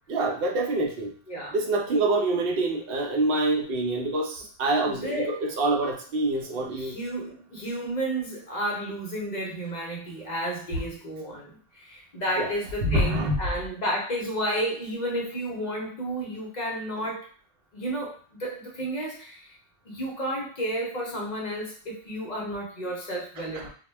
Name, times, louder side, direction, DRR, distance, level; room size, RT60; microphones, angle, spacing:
voice 1, 0.1-1.1 1.5-7.0 12.4-12.5 12.8-13.4 23.5-23.6, right 2 dB, 65° right, 2 dB, 0.7 m, -26 dB
voice 2, 4.8-5.3 6.6-17.2 17.7-19.5 19.9-23.7, right 1 dB, 50° left, -2 dB, 0.7 m, -32 dB
2.1 x 2.1 x 3.2 m, 0.43 s
omnidirectional pair, 1.1 m